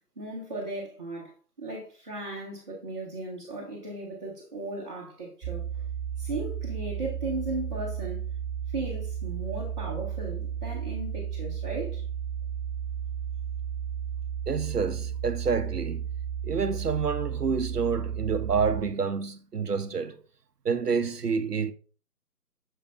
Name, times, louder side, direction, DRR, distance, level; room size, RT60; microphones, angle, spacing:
voice 1, 0.2-1.3 1.6-5.8 6.2-8.2 8.7-12.0, right 2 dB, 25° right, 1.3 m, -36 dB
sound 1, 5.4-18.8, right 8 dB, 10° right, 2.3 m, -33 dB
voice 2, 14.5-16.0 16.4-20.2 20.6-21.7, right 5 dB, 75° right, 0.8 m, -28 dB
6.5 x 6.4 x 2.3 m
figure-of-eight pair, 155°, 47 cm